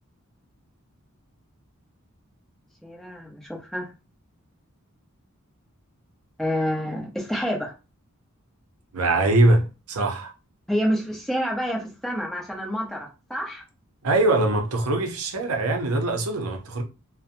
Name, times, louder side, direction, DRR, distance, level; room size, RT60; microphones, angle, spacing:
voice 1, 2.8-3.9 6.4-7.7 10.7-13.6, equal, ahead, 0.6 m, -28 dB
voice 2, 8.9-10.3 14.0-16.8, right 2 dB, 85° right, 0.6 m, -22 dB
2.6 x 2.1 x 2.5 m
head